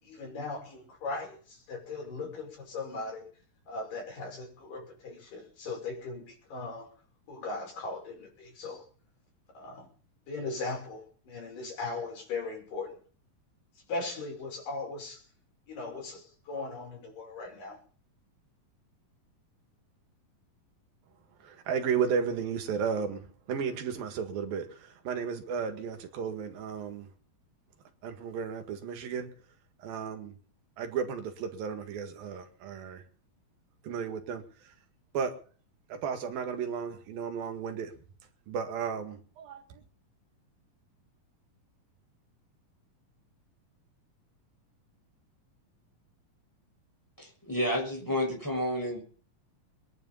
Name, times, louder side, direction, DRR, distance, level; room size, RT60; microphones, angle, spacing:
voice 1, 0.0-3.3 3.7-6.9 7.3-8.8 9.5-9.9 10.3-13.0 13.9-15.3 15.7-17.8, left 3 dB, 65° left, 0 dB, 7.2 m, -38 dB
voice 2, 21.4-27.1 28.0-29.3 29.8-30.4 30.8-33.0 33.8-34.7 35.1-35.3 35.9-37.9 38.5-39.8, right 6 dB, 75° right, 7 dB, 3.6 m, -34 dB
voice 3, 47.2-49.0, equal, 5° left, 1 dB, 6.3 m, -30 dB
22.0 x 11.0 x 5.6 m, 0.43 s
omnidirectional pair, 4.1 m